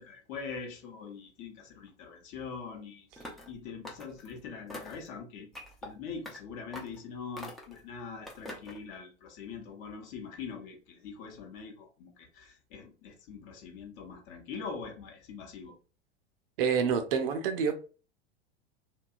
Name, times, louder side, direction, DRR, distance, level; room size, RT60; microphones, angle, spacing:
voice 1, 0.0-3.1 3.5-5.5 5.8-15.7, left 5 dB, 45° left, 0.8 m, -43 dB
sound 1, 3.2-3.5 3.8-4.3 4.7-5.1 5.5-5.9 6.2-6.4 6.7-7.0 7.4-7.8 8.3-8.8, left 1 dB, ahead, 0.3 m, -44 dB
voice 2, 16.6-17.8, right 6 dB, 55° right, 0.5 m, -27 dB
2.7 x 2.2 x 2.3 m
figure-of-eight pair, 85°, 33 cm